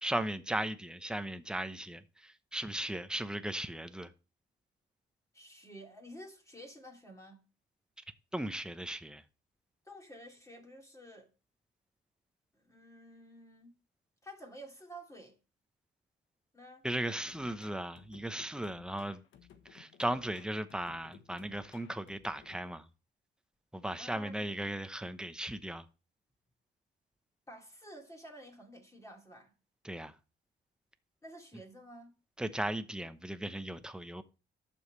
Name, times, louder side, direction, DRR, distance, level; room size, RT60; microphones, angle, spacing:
voice 1, 0.0-4.1 8.3-9.2 16.8-19.2 19.7-22.8 23.7-25.8 29.8-30.1 32.4-34.2, right 1 dB, 5° right, 0.9 m, -37 dB
voice 2, 5.3-7.4 9.9-11.3 12.5-13.7 14.2-15.4 16.5-16.8 23.9-24.5 27.5-29.5 31.2-32.1, equal, 15° left, 2.6 m, -51 dB
sound 1, 17.3-22.8, left 9 dB, 75° left, 1.3 m, -58 dB
11.0 x 7.2 x 3.3 m
cardioid pair, 90°, 20 cm